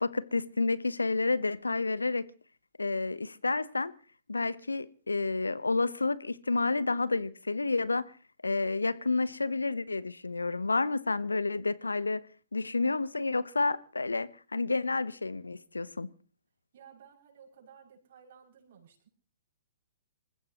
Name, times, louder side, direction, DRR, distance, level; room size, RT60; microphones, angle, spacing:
voice 1, 0.0-2.3 2.8-3.9 4.3-8.1 8.4-12.2 12.5-16.1, left 3 dB, 80° left, 1.0 m, -30 dB
voice 2, 16.7-19.1, right 7 dB, 50° right, 6.6 m, -56 dB
27.5 x 15.0 x 3.0 m
figure-of-eight pair, 115°, 0 cm